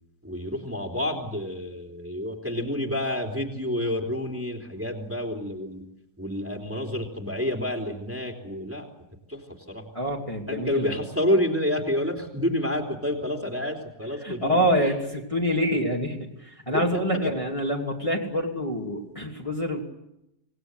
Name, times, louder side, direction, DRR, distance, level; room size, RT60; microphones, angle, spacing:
voice 1, 0.2-5.8 6.2-8.9 9.3-9.9 10.5-14.9 16.7-16.8 17.1-17.3, left 1 dB, 10° right, 1 dB, 3.3 m, -29 dB
voice 2, 9.9-10.9 14.2-19.8, equal, 20° left, -2 dB, 3.0 m, -26 dB
27.0 x 19.5 x 8.0 m, 0.85 s
omnidirectional pair, 1.7 m